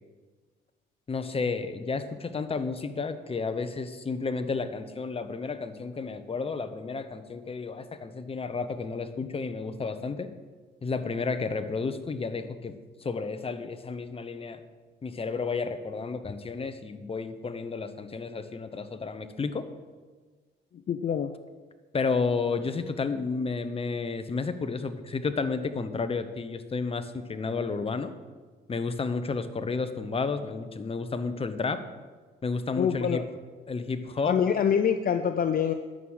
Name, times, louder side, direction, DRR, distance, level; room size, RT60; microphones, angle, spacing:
voice 1, 1.1-10.3 10.8-14.6 15.0-19.7 21.9-28.1 28.7-31.8 32.4-33.2 33.7-34.4, left 4 dB, 30° left, 9 dB, 1.0 m, -31 dB
voice 2, 20.9-21.3 32.8-33.2 34.2-35.7, left 8 dB, 45° left, 8 dB, 0.6 m, -25 dB
11.0 x 6.4 x 8.8 m, 1.4 s
cardioid pair, 90°, 20 cm